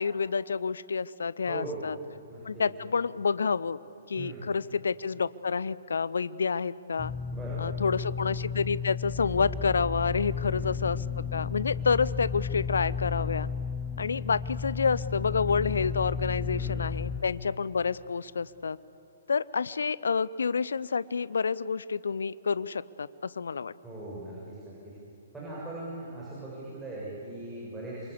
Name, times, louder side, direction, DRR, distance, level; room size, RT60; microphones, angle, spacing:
voice 1, 0.0-2.0 2.4-3.8 4.1-7.1 7.6-13.5 14.0-18.8 19.3-23.7, left 5 dB, 65° left, 19 dB, 0.6 m, -29 dB
voice 2, 1.5-1.9 2.3-2.6 4.2-4.5 7.3-7.8 10.3-10.7 16.5-16.9 23.8-24.9 25.3-28.1, right 2 dB, 10° right, -7 dB, 7.0 m, -40 dB
sound 1, 7.0-17.2, left 6 dB, 10° left, 1.1 m, -33 dB
27.5 x 24.0 x 8.4 m, 2.8 s
figure-of-eight pair, 120°, 0 cm